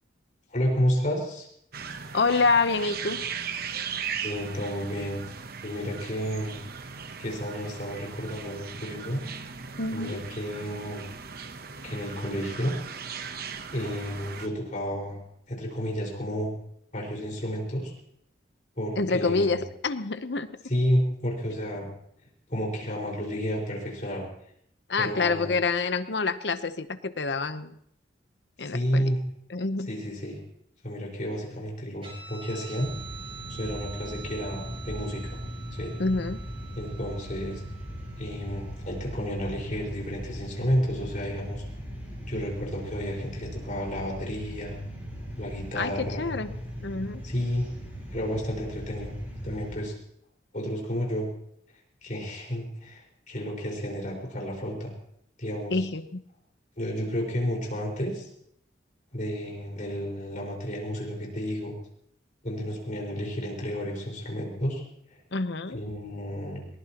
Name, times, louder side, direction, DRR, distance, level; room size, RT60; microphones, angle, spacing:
voice 1, 0.5-1.5 4.2-5.2 5.6-6.6 7.2-9.2 9.9-11.1 11.8-12.8 13.7-15.2 15.5-16.5 16.9-17.9 18.7-19.6 20.6-21.9 22.5-24.3 25.0-25.6 28.6-29.2 29.9-30.4 30.8-32.9 33.5-35.4 35.7-36.0 36.7-37.6 38.2-41.6 42.3-44.8 45.4-46.3 47.2-47.7 48.1-49.1 49.4-49.9 50.5-51.3 52.0-54.9 55.4-55.8 56.8-58.3 59.1-61.7 62.4-64.8 65.7-66.7, equal, 45° left, -1 dB, 5.1 m, -31 dB
sound 1, 1.7-14.5, right 6 dB, 55° right, 0.9 m, -38 dB
voice 2, 2.1-3.2 9.8-10.2 19.0-20.5 24.9-27.7 28.6-29.0 29.5-29.9 36.0-36.4 45.8-45.9 46.2-46.5 46.8-47.2 55.7-56.2 65.3-65.8, left 3 dB, 65° left, 11 dB, 0.9 m, -27 dB
Guitar, 32.0-38.9, right 7 dB, 30° right, 5.1 m, -46 dB
sound 2, 32.8-49.8, equal, 10° right, 6.8 m, -39 dB
22.0 x 20.5 x 3.0 m, 0.71 s
head